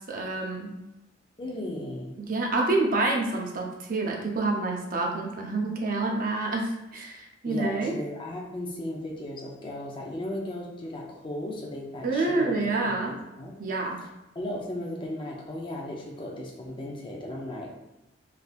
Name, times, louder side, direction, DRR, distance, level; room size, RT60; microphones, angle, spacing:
voice 1, 0.1-0.8 2.2-8.0 12.0-13.1 13.6-14.0, right 2 dB, 50° right, 0 dB, 0.6 m, -28 dB
voice 2, 1.4-2.1 7.5-12.6 13.0-13.6 14.0-14.1 14.3-17.8, left 1 dB, 25° left, -2 dB, 0.6 m, -36 dB
3.3 x 2.7 x 2.4 m, 0.96 s
head